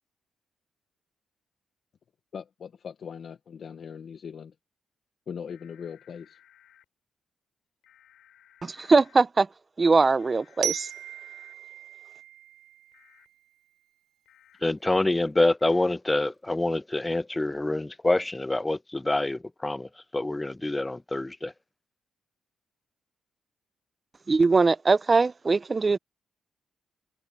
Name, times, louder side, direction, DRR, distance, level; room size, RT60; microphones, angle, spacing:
voice 1, 2.3-4.5 5.3-6.4, left 7 dB, 55° left, 1.1 m, -40 dB
sound 1, 5.5-6.9 7.8-9.2 10.2-11.6 12.9-13.3 14.3-14.6 15.6-15.9, left 11 dB, 85° left, 5.9 m, -59 dB
voice 2, 8.6-9.5 9.8-10.9 24.3-26.0, right 4 dB, 30° right, 0.7 m, -21 dB
Glockenspiel, 10.6-13.5, right 11 dB, 90° right, 0.4 m, -37 dB
voice 3, 14.6-19.9 20.1-21.5, left 2 dB, 15° left, 0.5 m, -26 dB
cardioid pair, 105°, 0 cm